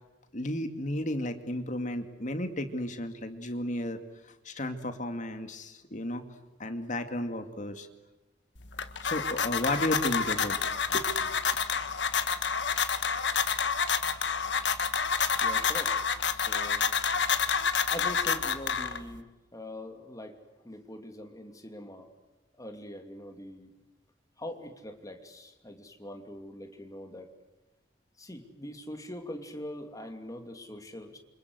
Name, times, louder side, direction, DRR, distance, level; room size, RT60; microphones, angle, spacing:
voice 1, 0.3-4.0 4.4-6.3 6.6-7.9 9.0-11.3, left 1 dB, 45° left, 8 dB, 2.3 m, -33 dB
sound 1, 8.6-19.2, left 6 dB, 70° left, 1.6 m, -28 dB
voice 2, 15.4-16.9 17.9-20.4 20.6-22.1 22.6-23.7 24.4-27.3 28.2-31.2, left 1 dB, 20° left, 5 dB, 2.8 m, -43 dB
28.0 x 26.0 x 8.1 m, 1.1 s
head